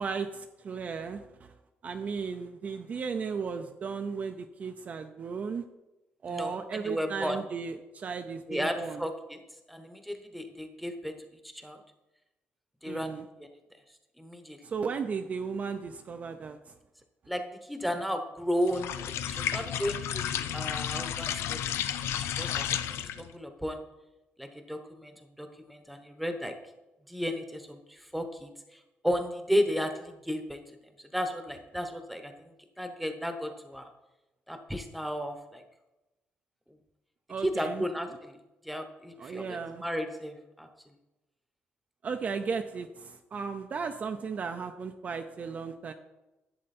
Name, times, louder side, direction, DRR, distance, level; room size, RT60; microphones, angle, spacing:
voice 1, 0.0-1.5 1.8-5.6 6.2-9.0 12.8-13.3 14.6-16.7 37.3-37.8 39.2-39.8 42.0-45.9, right 5 dB, 35° right, 6 dB, 0.5 m, -35 dB
voice 2, 6.3-7.4 8.5-9.1 9.7-11.2 11.5-11.8 12.8-13.5 14.2-14.6 17.3-21.6 22.0-23.8 24.4-26.6 27.1-28.5 29.0-30.6 31.1-32.3 32.8-33.9 34.5-35.6 37.4-38.3 38.6-40.7, equal, ahead, 6 dB, 1.0 m, -34 dB
sound 1, 18.7-23.3, left 10 dB, 85° left, 0.6 m, -32 dB
11.0 x 7.7 x 4.2 m, 1.0 s
cardioid pair, 160°, 4 cm